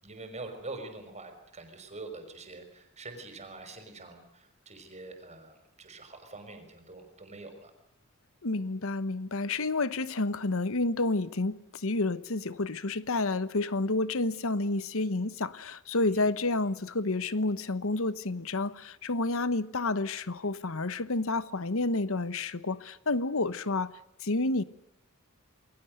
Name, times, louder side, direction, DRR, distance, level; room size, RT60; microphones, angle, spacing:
voice 1, 0.0-7.7 16.1-16.3, right 3 dB, 30° right, 5.6 m, -45 dB
voice 2, 8.4-23.9 24.2-24.6, left 2 dB, 65° left, 1.1 m, -30 dB
29.0 x 21.5 x 6.7 m
head